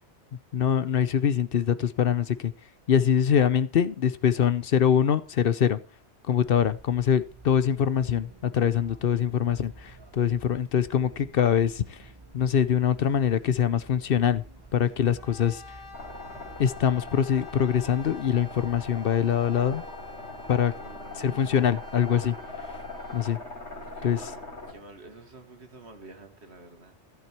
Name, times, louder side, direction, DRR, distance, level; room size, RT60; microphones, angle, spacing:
voice 1, 0.5-2.5 2.9-5.8 6.3-12.0 12.3-14.4 14.7-15.6 16.6-19.8 20.5-20.7 21.2-22.3 23.1-23.4 24.0-24.2, left 8 dB, 60° left, 15 dB, 0.8 m, -24 dB
sound 1, 6.4-19.1, right 3 dB, 20° right, 1.3 m, -51 dB
Brass instrument, 15.2-23.3, left 4 dB, 25° left, 2.3 m, -47 dB
sound 2, 15.9-24.7, left 2 dB, 90° left, 4.1 m, -41 dB
voice 2, 20.7-21.5 23.7-24.4 24.7-27.0, right 2 dB, 75° right, 6 dB, 2.1 m, -49 dB
14.5 x 8.1 x 4.4 m, 0.35 s
omnidirectional pair, 1.1 m